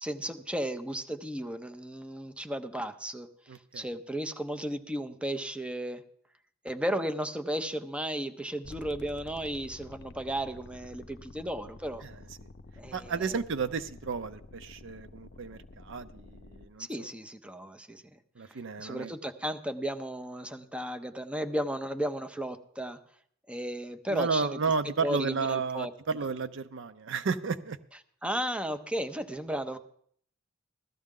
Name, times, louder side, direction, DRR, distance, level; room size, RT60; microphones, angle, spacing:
voice 1, 0.0-3.3 3.7-6.0 6.6-12.0 12.8-13.4 16.8-18.2 18.8-23.0 23.5-24.6 24.8-25.9 28.2-29.8, right 1 dB, 5° right, 8 dB, 0.6 m, -34 dB
voice 2, 3.5-3.8 12.0-12.1 12.9-17.1 18.4-19.1 24.1-27.8, right 5 dB, 65° right, 12 dB, 0.6 m, -32 dB
sound 1, 8.6-16.7, left 2 dB, 60° left, 0.7 m, -50 dB
16.0 x 13.0 x 3.7 m, 0.62 s
head